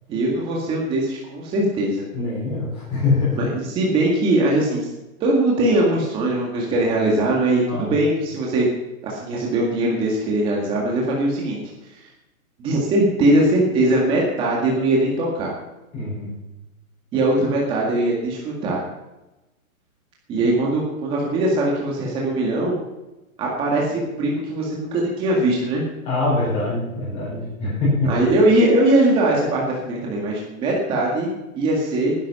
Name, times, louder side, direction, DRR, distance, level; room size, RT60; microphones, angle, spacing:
voice 1, 0.1-2.0 3.4-4.9 5.2-8.7 9.0-11.6 12.6-15.5 17.1-18.8 20.3-22.7 23.4-25.8 28.0-32.1, right 1 dB, 10° right, -3 dB, 1.9 m, -21 dB
voice 2, 2.1-3.4 7.7-7.9 15.9-16.4 26.0-28.1, left 3 dB, 15° left, -8 dB, 4.8 m, -23 dB
17.5 x 10.5 x 5.5 m, 1.0 s
hypercardioid pair, 175°, 42 cm